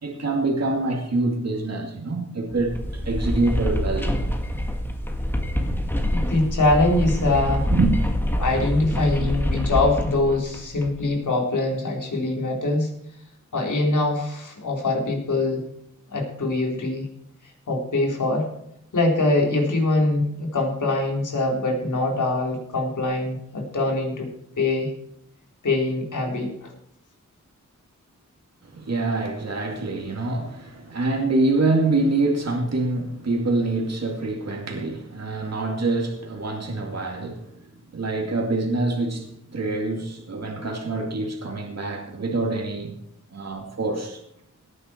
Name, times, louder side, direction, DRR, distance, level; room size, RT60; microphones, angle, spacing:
voice 1, 0.0-4.2 7.7-7.9 28.7-37.5 37.9-42.9 43.3-44.2, right 2 dB, 55° right, 2.4 m, -25 dB
sound 1, 2.5-11.0, equal, 5° left, 1.7 m, -26 dB
voice 2, 6.1-7.7 8.3-12.9 13.5-15.6 16.1-17.1 17.7-18.5 18.9-24.3 24.6-24.9 25.6-26.7, left 2 dB, 75° left, 4.0 m, -23 dB
18.0 x 9.8 x 4.5 m
wide cardioid pair, 105°, 31 cm